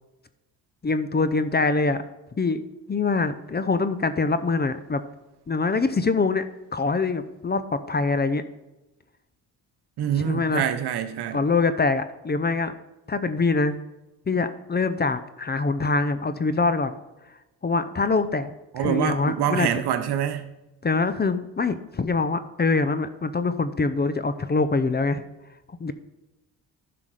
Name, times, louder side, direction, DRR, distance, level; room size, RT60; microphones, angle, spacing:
voice 1, 0.8-2.0 2.4-2.6 2.9-5.0 5.5-6.4 6.7-8.4 10.2-10.7 11.3-12.7 13.1-13.8 14.3-16.9 17.6-19.7 20.8-25.2 25.8-25.9, left 3 dB, 25° left, 0.7 m, -24 dB
voice 2, 10.0-11.4 18.7-20.4, right 9 dB, 70° right, 1.1 m, -25 dB
10.5 x 5.9 x 4.9 m
supercardioid pair, 70°, 41 cm